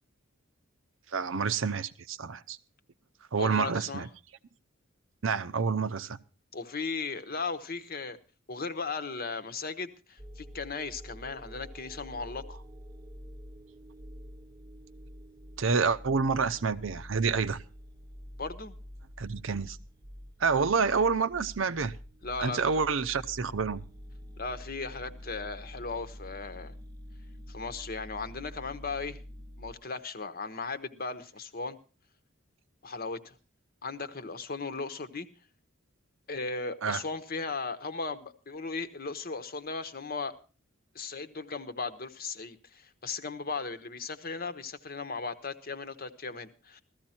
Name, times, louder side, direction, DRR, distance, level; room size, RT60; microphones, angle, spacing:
voice 1, 1.1-2.6 3.3-4.1 5.2-6.2 15.6-17.6 19.2-19.8 20.4-22.0 22.4-23.9 36.8-37.0, right 5 dB, 70° right, 0.7 m, -28 dB
voice 2, 3.4-4.1 6.5-8.2 8.5-12.6 18.4-18.7 22.2-22.8 24.4-26.7 27.5-29.2 29.6-31.8 32.8-33.3 33.8-35.3 36.3-40.3 40.9-46.8, left 4 dB, 45° left, 1.0 m, -37 dB
sound 1, 10.2-29.7, equal, 20° right, 0.8 m, -47 dB
15.5 x 13.5 x 4.4 m
head